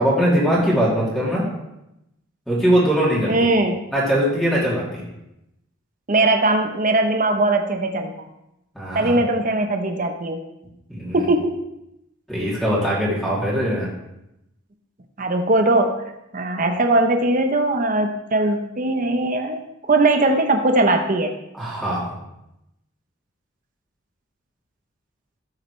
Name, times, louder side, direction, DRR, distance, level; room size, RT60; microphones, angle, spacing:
voice 1, 0.0-1.4 2.5-3.3 3.9-5.0 8.7-9.2 10.9-11.3 12.3-13.9 21.5-22.0, equal, ahead, -7 dB, 2.9 m, -21 dB
voice 2, 3.3-3.7 6.1-8.1 8.9-10.4 11.1-11.6 15.2-16.0 16.3-21.3, right 2 dB, 40° right, 5 dB, 0.8 m, -20 dB
13.0 x 8.6 x 3.2 m, 0.87 s
head